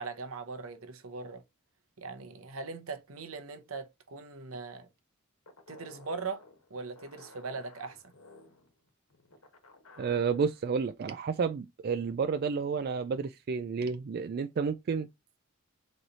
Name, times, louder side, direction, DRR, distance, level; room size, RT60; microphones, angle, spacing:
voice 1, 0.0-1.4 2.0-4.9 5.7-6.4 6.7-8.1, right 4 dB, 80° right, 0.8 m, -40 dB
sound 1, 5.5-10.6, left 2 dB, 90° left, 1.2 m, -55 dB
voice 2, 10.0-15.1, right 5 dB, 50° right, 0.3 m, -31 dB
3.9 x 3.2 x 4.1 m
head